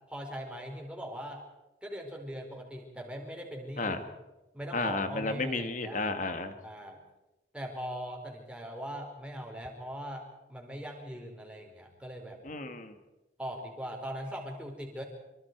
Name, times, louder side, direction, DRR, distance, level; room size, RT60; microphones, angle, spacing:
voice 1, 0.1-1.4 1.8-4.0 4.5-6.0 6.6-7.0 7.5-12.4 13.4-15.0, equal, 5° right, 0 dB, 4.5 m, -40 dB
voice 2, 4.7-6.5 12.4-13.0, left 3 dB, 45° left, 8 dB, 2.0 m, -32 dB
25.5 x 25.0 x 4.7 m, 1.0 s
head